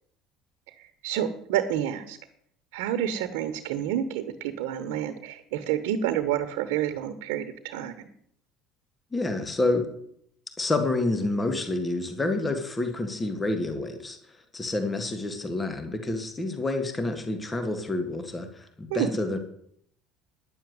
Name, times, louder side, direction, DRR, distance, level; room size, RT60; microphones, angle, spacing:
voice 1, 0.8-2.2 2.7-7.9 18.9-19.1, right 10 dB, 85° right, 9 dB, 1.1 m, -29 dB
voice 2, 9.1-9.9 10.6-19.4, left 2 dB, 20° left, 7 dB, 1.9 m, -28 dB
10.0 x 7.2 x 9.4 m, 0.68 s
supercardioid pair, 100°, 0 cm